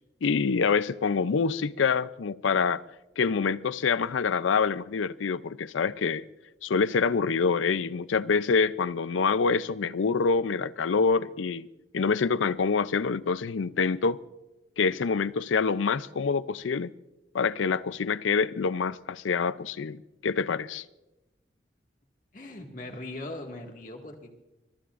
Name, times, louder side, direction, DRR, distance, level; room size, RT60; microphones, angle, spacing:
voice 1, 0.2-2.8 3.2-6.2 6.6-11.7 11.9-14.2 14.8-16.9 17.3-20.8, left 5 dB, 85° left, 0.5 m, -26 dB
voice 2, 22.3-24.3, left 2 dB, 45° left, 1.9 m, -40 dB
24.5 x 21.5 x 2.5 m
head